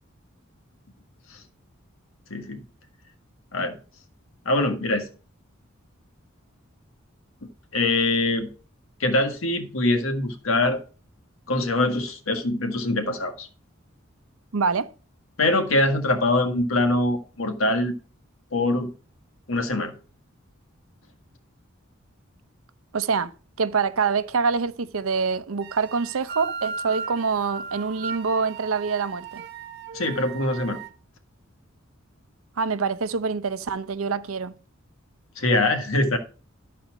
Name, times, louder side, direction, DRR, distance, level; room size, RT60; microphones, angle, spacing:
voice 1, 2.3-2.6 3.5-3.8 4.4-5.1 7.7-8.5 9.0-10.8 11.5-13.5 15.4-17.9 18.5-18.9 19.5-19.9 29.9-30.8 35.4-36.2, left 2 dB, 80° left, 1.6 m, -23 dB
voice 2, 14.5-14.9 22.9-23.3 23.6-29.4 32.6-34.5, right 5 dB, 85° right, 0.7 m, -25 dB
sound 1, 25.6-30.9, right 5 dB, 55° right, 1.0 m, -37 dB
12.0 x 4.3 x 6.1 m
head